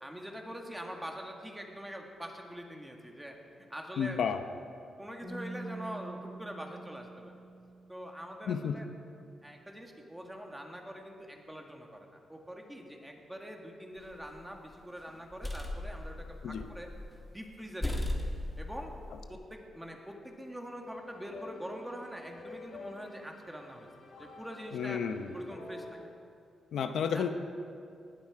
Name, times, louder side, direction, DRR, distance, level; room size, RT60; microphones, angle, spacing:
voice 1, 0.0-4.2 5.0-7.3 7.9-8.9 9.4-16.2 16.4-16.9 17.3-18.0 18.6-18.9 19.3-23.9 24.2-25.0 25.3-25.8 27.1-27.3, equal, 5° right, 2 dB, 1.8 m, -44 dB
voice 2, 4.0-4.4 8.5-8.8 16.4-16.7 24.7-25.3 26.7-27.3, left 7 dB, 80° left, 8 dB, 0.7 m, -31 dB
sound 1, 5.2-8.4, right 2 dB, 45° right, 3.3 m, -45 dB
sound 2, 14.0-14.6 15.1-17.2 17.5-17.6 17.8-19.3, left 1 dB, 10° left, 1.5 m, -37 dB
sound 3, 20.8-25.9, left 3 dB, 60° left, 2.6 m, -50 dB
19.5 x 11.5 x 4.8 m, 2.4 s
cardioid pair, 120°, 0 cm